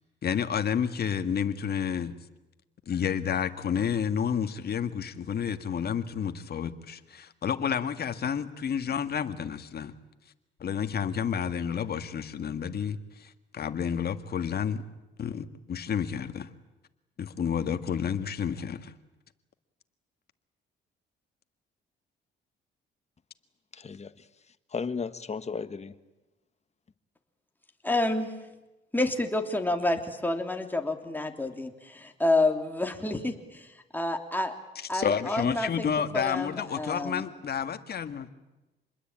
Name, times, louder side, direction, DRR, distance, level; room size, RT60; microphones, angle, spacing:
voice 1, 0.2-2.1 2.9-9.9 10.6-14.8 15.2-16.5 17.2-18.9 34.8-38.3, left 7 dB, 55° left, 9 dB, 1.8 m, -30 dB
voice 2, 23.7-26.0, left 5 dB, 35° left, 11 dB, 1.5 m, -36 dB
voice 3, 27.8-28.3 28.9-33.7 33.9-34.5 34.9-35.8 36.1-37.2, left 2 dB, 10° left, 4 dB, 3.3 m, -29 dB
27.5 x 21.5 x 9.0 m, 1.0 s
cardioid pair, 90°, 20 cm